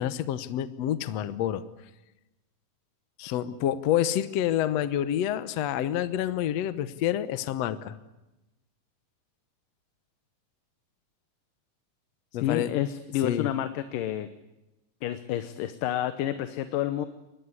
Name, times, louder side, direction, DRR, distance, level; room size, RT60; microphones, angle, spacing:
voice 1, 0.0-1.6 3.2-7.9 12.3-12.7 13.2-13.5, left 11 dB, 65° left, 13 dB, 1.9 m, -28 dB
voice 2, 12.4-14.3 15.0-17.1, left 12 dB, 85° left, 11 dB, 2.6 m, -29 dB
24.0 x 20.0 x 9.8 m, 0.99 s
omnidirectional pair, 3.8 m